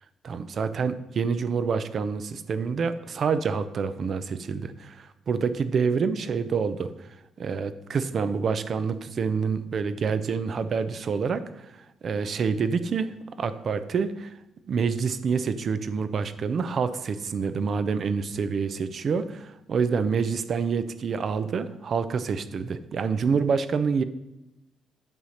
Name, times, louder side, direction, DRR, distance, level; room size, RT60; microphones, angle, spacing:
voice 1, 0.2-7.1 7.4-11.8 12.0-14.4 14.7-24.0, right 5 dB, 55° right, 12 dB, 0.5 m, -27 dB
8.9 x 4.2 x 6.4 m, 0.92 s
cardioid pair, 90°, 0 cm